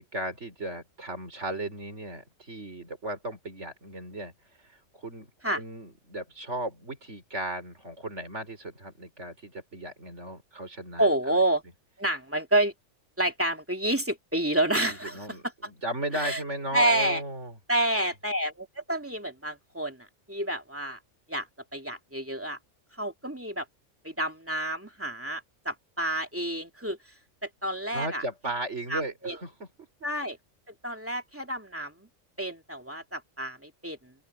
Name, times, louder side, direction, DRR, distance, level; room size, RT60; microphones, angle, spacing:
voice 1, 0.0-4.3 4.6-5.3 5.5-11.4 14.9-17.5 27.9-29.5, right 1 dB, 65° right, 4.8 m, -36 dB
voice 2, 11.0-11.6 12.0-12.7 13.2-15.3 16.1-16.4 16.7-17.2 17.7-21.0 21.3-21.5 21.7-22.6 23.0-23.7 24.0-27.1 27.4-28.3 28.9-29.4 30.0-30.4 30.8-32.1 32.4-34.1, right 1 dB, 10° right, 2.6 m, -29 dB
open air
omnidirectional pair, 1.3 m